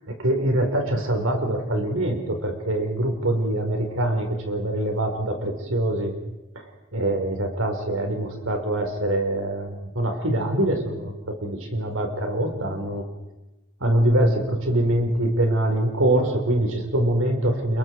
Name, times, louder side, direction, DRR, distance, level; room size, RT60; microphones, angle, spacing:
voice 1, 0.0-6.1 6.5-6.6 6.9-13.0 13.8-17.8, right 1 dB, 85° right, 3 dB, 4.8 m, -24 dB
30.0 x 22.5 x 4.8 m, 1.0 s
head